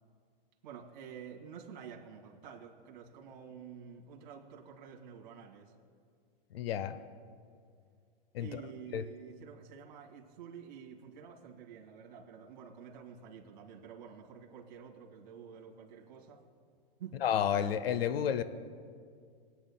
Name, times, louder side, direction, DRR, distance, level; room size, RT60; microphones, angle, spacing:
voice 1, 0.6-5.7 8.4-16.4 17.0-17.2, right 7 dB, 50° right, -1 dB, 2.0 m, -49 dB
voice 2, 6.5-7.0 8.3-8.6 8.9-9.0 17.2-18.4, left 9 dB, 85° left, 13 dB, 0.7 m, -31 dB
23.0 x 8.6 x 2.2 m, 2.1 s
supercardioid pair, 170°, 29 cm